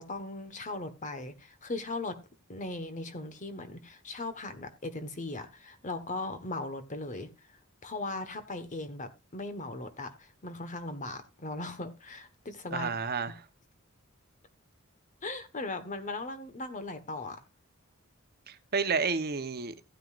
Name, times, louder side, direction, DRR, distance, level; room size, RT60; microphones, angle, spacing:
voice 1, 0.0-2.2 2.5-7.3 7.8-12.9 15.2-17.4, left 2 dB, 35° left, 1.3 m, -38 dB
voice 2, 12.7-13.3 18.5-19.9, right 5 dB, 50° right, 1.0 m, -31 dB
15.5 x 9.2 x 2.5 m
head